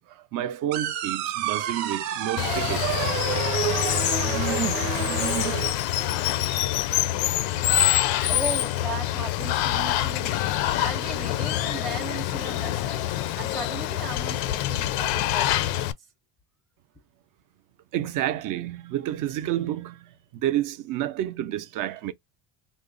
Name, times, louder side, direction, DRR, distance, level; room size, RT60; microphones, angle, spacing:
voice 1, 0.0-3.4 17.9-22.1, right 12 dB, 50° right, 0.5 m, -30 dB
sound 1, 0.7-5.7, right 11 dB, 90° right, 0.8 m, -29 dB
Water, 2.4-15.9, left 13 dB, 80° left, 0.6 m, -26 dB
voice 2, 8.3-10.4 10.8-15.9, right 2 dB, ahead, 0.5 m, -37 dB
3.7 x 2.0 x 3.8 m
cardioid pair, 155°, 44 cm